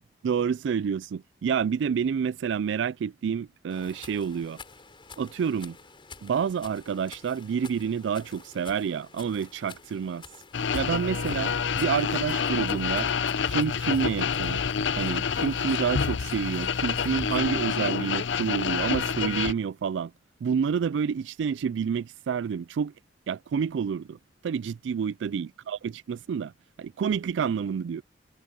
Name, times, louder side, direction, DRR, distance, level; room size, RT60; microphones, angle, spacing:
voice 1, 0.2-4.6 5.2-5.8 6.2-10.2 10.7-13.1 13.5-14.6 15.0-20.1 20.4-22.9 23.3-24.2 24.4-26.5 26.8-28.0, right 7 dB, 75° right, 0.3 m, -28 dB
sound 1, 3.7-17.4, left 4 dB, 30° left, 5.1 m, -50 dB
sound 2, 10.5-19.5, left 6 dB, 80° left, 0.6 m, -28 dB
head